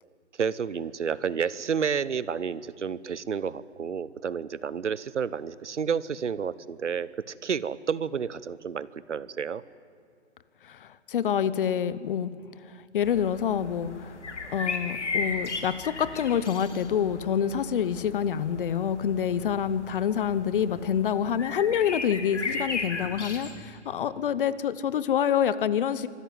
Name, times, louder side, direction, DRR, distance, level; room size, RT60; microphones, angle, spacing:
voice 1, 0.4-7.1 7.4-9.6, right 6 dB, 90° right, 19 dB, 0.9 m, -30 dB
voice 2, 10.6-12.3 12.6-14.2 14.5-26.1, left 8 dB, 50° left, 16 dB, 1.0 m, -27 dB
sound 1, 13.0-23.6, left 4 dB, 80° left, 3.2 m, -36 dB
25.0 x 13.0 x 9.4 m, 2.5 s
hypercardioid pair, 145°, 35 cm